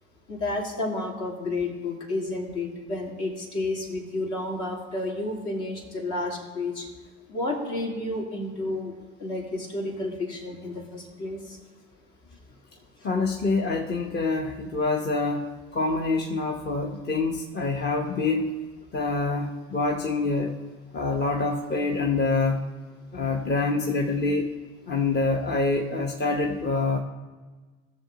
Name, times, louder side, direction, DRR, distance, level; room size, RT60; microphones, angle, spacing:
voice 1, 0.3-6.9 7.3-8.9 9.2-11.6, left 2 dB, 60° left, -1 dB, 2.8 m, -31 dB
voice 2, 13.0-15.5 15.7-18.6 18.9-20.6 20.9-22.7 23.1-24.5 24.9-27.0, left 3 dB, 30° left, 2 dB, 0.9 m, -26 dB
16.5 x 6.9 x 3.9 m, 1.3 s
hypercardioid pair, 75°, 33 cm